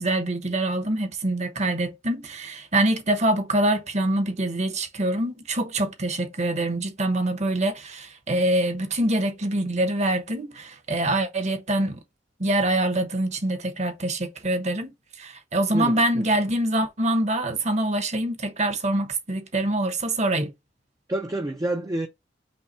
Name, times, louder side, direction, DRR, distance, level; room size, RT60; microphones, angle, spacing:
voice 1, 0.0-12.0 12.4-14.9 15.2-20.5, right 1 dB, 40° right, 1.0 m, -25 dB
voice 2, 15.7-16.3 21.1-22.1, right 1 dB, 20° right, 0.5 m, -28 dB
5.5 x 2.2 x 4.2 m
head